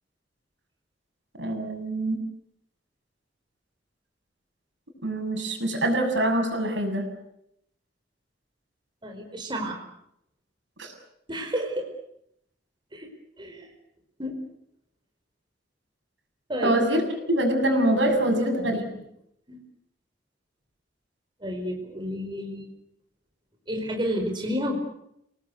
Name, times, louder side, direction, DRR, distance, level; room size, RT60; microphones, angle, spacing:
voice 1, 1.4-2.2 5.0-7.1 10.8-10.9 16.6-17.0 17.3-18.8, right 1 dB, 75° right, 4 dB, 6.8 m, -24 dB
voice 2, 9.0-9.8 11.3-11.9 12.9-13.1 13.4-13.7 14.2-14.4 16.5-16.8 18.3-19.0 19.5-19.6 21.4-22.7 23.7-24.7, equal, 25° right, 2 dB, 4.8 m, -31 dB
29.0 x 19.0 x 8.2 m, 0.77 s
head